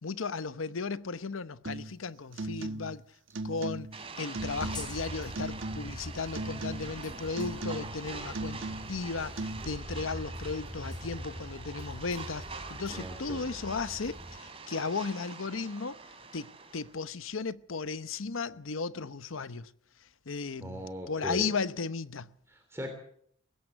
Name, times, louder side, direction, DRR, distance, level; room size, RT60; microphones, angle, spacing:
voice 1, 0.0-3.0 3.4-16.0 16.3-19.7 20.3-22.3, left 4 dB, 90° left, 0.9 m, -35 dB
sound 1, 1.7-2.0 2.3-3.0 3.3-4.0 4.3-5.0 5.4-6.1 6.3-7.0 7.4-8.0 8.3-9.0 9.4-9.6, right 2 dB, 75° right, 1.3 m, -38 dB
sound 2, 3.9-17.0, right 4 dB, 30° right, 3.3 m, -45 dB
sound 3, 4.4-14.4, left 1 dB, 20° left, 3.7 m, -44 dB
voice 2, 12.9-13.4 20.6-21.5 22.5-22.9, equal, 15° right, 2.9 m, -39 dB
20.5 x 17.0 x 7.9 m
head